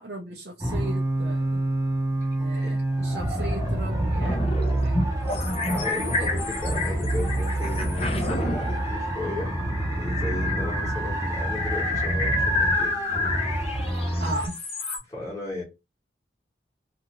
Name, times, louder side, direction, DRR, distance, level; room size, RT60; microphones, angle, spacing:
voice 1, 0.0-1.6 2.4-5.1 5.7-6.3 10.3-10.6 14.2-14.5, right 1 dB, 60° right, 0.6 m, -37 dB
sound 1, 0.6-14.5, right 1 dB, 15° right, 0.7 m, -27 dB
sound 2, 4.2-15.0, left 2 dB, 35° left, 0.6 m, -30 dB
voice 2, 5.6-9.5 10.0-12.9 15.1-15.6, left 2 dB, 15° left, 1.2 m, -35 dB
2.6 x 2.4 x 2.9 m
head